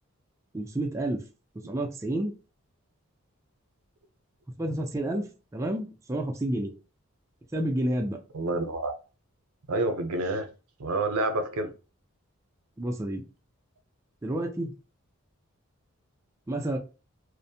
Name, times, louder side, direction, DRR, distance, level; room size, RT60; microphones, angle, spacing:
voice 1, 0.5-1.2 1.6-2.3 4.6-6.7 7.5-8.2 12.8-13.2 14.2-14.7 16.5-16.8, right 1 dB, 15° right, 0.3 m, -30 dB
voice 2, 8.3-8.9 9.7-10.5 10.8-11.7, right 2 dB, 90° right, 0.6 m, -28 dB
2.5 x 2.1 x 2.7 m
head